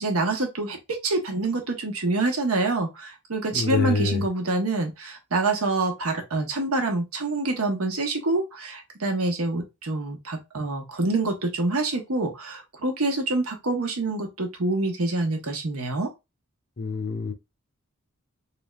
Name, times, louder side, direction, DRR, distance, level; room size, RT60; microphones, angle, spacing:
voice 1, 0.0-16.1, right 2 dB, 80° right, 1.0 m, -26 dB
voice 2, 3.5-4.2 16.8-17.3, left 4 dB, 45° left, 0.6 m, -25 dB
3.4 x 3.2 x 2.3 m
head